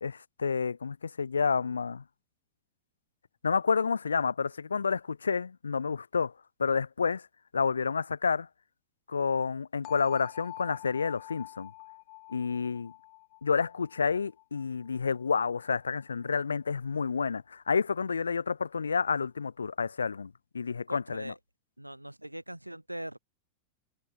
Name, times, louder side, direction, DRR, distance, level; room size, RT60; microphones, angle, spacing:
voice 1, 0.0-2.0 3.4-6.3 6.6-7.2 7.5-8.5 9.1-11.7 12.3-12.9 13.4-21.3, left 5 dB, 75° left, 0.9 m, -29 dB
sound 1, 9.8-15.7, left 28 dB, 45° left, 4.7 m, -47 dB
voice 2, 20.9-21.4 21.8-23.2, right 1 dB, 90° right, 3.8 m, -41 dB
figure-of-eight pair, 90°, 0 cm